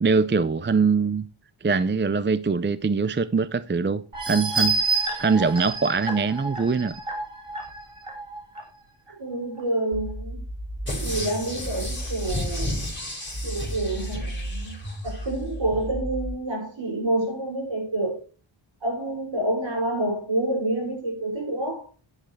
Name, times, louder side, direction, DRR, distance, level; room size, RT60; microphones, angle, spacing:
voice 1, 0.0-1.2 1.6-4.8 5.2-7.0, right 4 dB, 25° right, 0.5 m, -23 dB
sound 1, 4.1-8.6 9.1-9.2 9.6-9.7, right 3 dB, 85° right, 3.7 m, -28 dB
voice 2, 9.2-10.4 11.0-12.8 13.4-14.7 15.0-18.2 18.8-21.9, right 1 dB, 60° right, 7.1 m, -28 dB
sound 2, 9.9-12.9 13.3-16.4, right 1 dB, ahead, 3.6 m, -34 dB
sound 3, 10.9-15.3 15.7-15.8, left 2 dB, 20° left, 5.3 m, -34 dB
10.5 x 10.0 x 3.3 m
wide cardioid pair, 80°, 50 cm